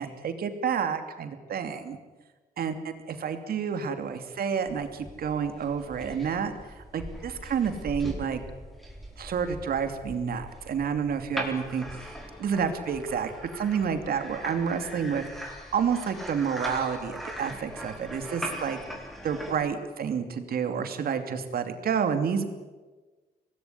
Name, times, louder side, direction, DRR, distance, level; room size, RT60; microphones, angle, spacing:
voice 1, 0.0-2.0 2.6-2.7 3.1-8.4 9.2-11.9 12.4-18.8 19.2-22.4, right 7 dB, 70° right, 7 dB, 2.8 m, -29 dB
sound 1, 4.7-19.5, equal, ahead, 4.3 m, -40 dB
25.0 x 19.0 x 9.8 m, 1.3 s
wide cardioid pair, 150°, 16 cm